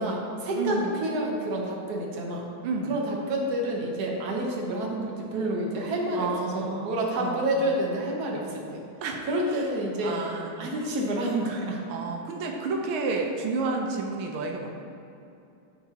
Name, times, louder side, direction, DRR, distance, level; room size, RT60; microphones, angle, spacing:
voice 1, 0.0-2.5 2.9-8.8 9.3-10.2 10.6-11.8, right 1 dB, 55° right, -1 dB, 1.5 m, -29 dB
voice 2, 0.5-1.1 2.6-3.0 6.1-7.5 9.0-9.7 10.0-10.8 11.9-14.7, right 4 dB, 85° right, 1 dB, 1.6 m, -31 dB
13.5 x 4.6 x 2.9 m, 2.8 s
omnidirectional pair, 2.3 m